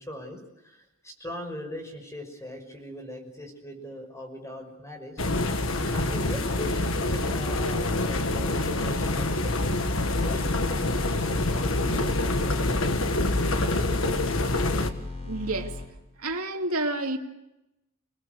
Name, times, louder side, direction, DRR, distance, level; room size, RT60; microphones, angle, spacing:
voice 1, 0.0-5.2 5.7-9.7 10.2-12.2, left 1 dB, 15° left, 5.7 m, -40 dB
sound 1, 5.2-14.9, left 2 dB, 65° left, 1.7 m, -26 dB
sound 2, 10.1-15.8, left 3 dB, 30° left, 6.0 m, -37 dB
voice 2, 15.2-15.7 16.2-17.2, right 2 dB, 90° right, 2.4 m, -29 dB
28.5 x 19.5 x 6.8 m
head